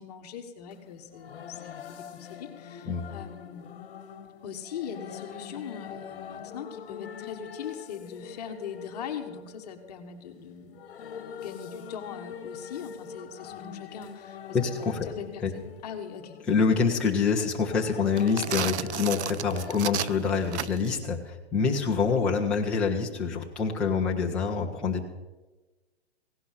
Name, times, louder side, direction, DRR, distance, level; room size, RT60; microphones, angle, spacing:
voice 1, 0.0-3.7 4.4-10.8 11.4-14.6 15.0-16.4, left 7 dB, 35° left, 5 dB, 1.3 m, -41 dB
sound 1, 0.7-19.8, left 7 dB, 55° left, 1.3 m, -44 dB
voice 2, 14.5-15.1 15.4-15.5 16.5-25.1, left 5 dB, 5° left, -3 dB, 0.5 m, -26 dB
sound 2, 18.1-21.0, right 11 dB, 80° right, 0.5 m, -33 dB
16.5 x 11.5 x 5.7 m, 1.1 s
hypercardioid pair, 165°, 33 cm